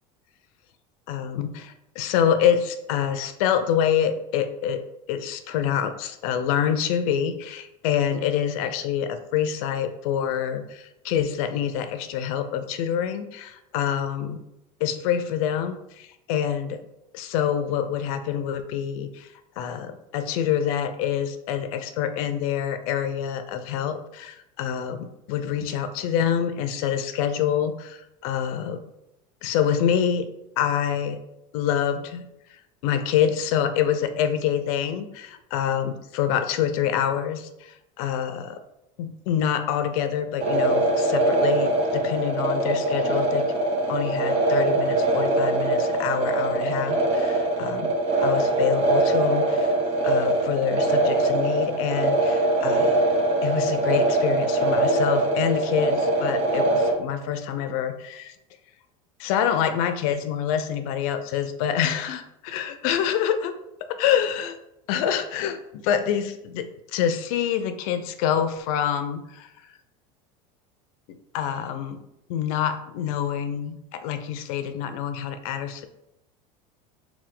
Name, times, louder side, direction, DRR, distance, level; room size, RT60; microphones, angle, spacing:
voice 1, 1.1-4.8 5.1-14.5 14.8-16.8 17.1-19.3 19.6-28.8 29.4-30.3 30.6-31.2 31.5-32.3 32.8-38.6 39.0-43.5 43.9-47.3 47.6-47.9 48.2-49.7 50.0-53.1 53.4-58.3 59.2-62.2 62.5-63.5 63.9-64.5 64.9-69.5 71.1-72.0 72.3-75.9, left 9 dB, 75° left, 9 dB, 0.5 m, -26 dB
sound 1, 40.4-56.9, right 2 dB, 35° right, 1.0 m, -22 dB
4.4 x 2.2 x 3.8 m, 0.87 s
supercardioid pair, 110°, 18 cm